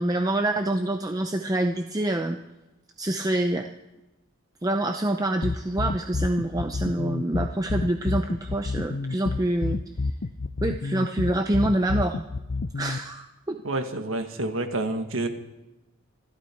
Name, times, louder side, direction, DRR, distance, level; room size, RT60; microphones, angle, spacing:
voice 1, 0.0-2.4 3.0-3.7 4.6-9.8 10.6-12.2 12.8-13.6, right 1 dB, 20° right, 5 dB, 0.6 m, -26 dB
sound 1, 5.4-13.0, left 3 dB, 55° left, 0.5 m, -29 dB
voice 2, 13.6-15.3, right 2 dB, 75° right, 6 dB, 1.7 m, -28 dB
26.5 x 12.0 x 4.5 m, 1.0 s
head